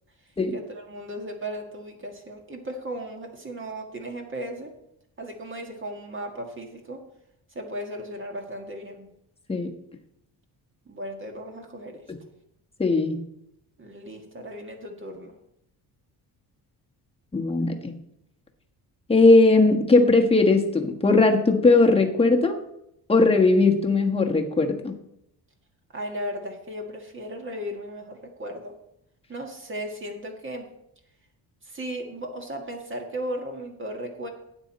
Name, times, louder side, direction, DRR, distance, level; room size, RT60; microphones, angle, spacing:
voice 1, 0.5-4.7 5.2-7.1 7.5-9.1 10.9-12.0 13.8-15.3 25.9-28.8 29.3-30.7 31.6-34.3, equal, 30° right, 2 dB, 1.7 m, -36 dB
voice 2, 12.8-13.2 17.3-17.9 19.1-22.6 23.1-24.9, left 3 dB, 15° left, 2 dB, 1.3 m, -19 dB
12.5 x 9.0 x 4.2 m, 0.79 s
cardioid pair, 130°, 41 cm